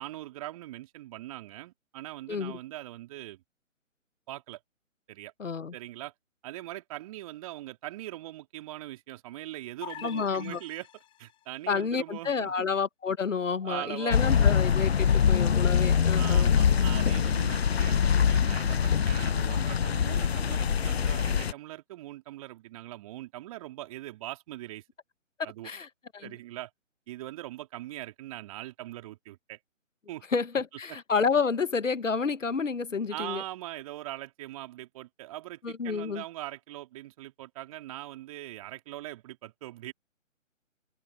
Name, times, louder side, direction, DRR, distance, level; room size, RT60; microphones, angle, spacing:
voice 1, 0.0-3.4 4.3-4.6 5.1-5.3 5.7-6.1 6.4-12.7 13.6-14.4 16.1-24.8 25.4-25.7 26.2-26.7 27.1-29.6 30.1-30.2 33.1-39.9, right 15 dB, 25° right, 4.0 m, -41 dB
voice 2, 2.3-2.6 5.4-5.7 10.0-10.6 11.7-16.5 25.6-25.9 26.1-26.3 30.3-33.4 35.6-36.2, left 5 dB, 70° left, 1.2 m, -29 dB
sound 1, 9.8-11.4, left 13 dB, 15° left, 7.7 m, -45 dB
sound 2, 14.1-21.5, left 7 dB, 50° left, 0.5 m, -24 dB
open air
figure-of-eight pair, 145°, 40 cm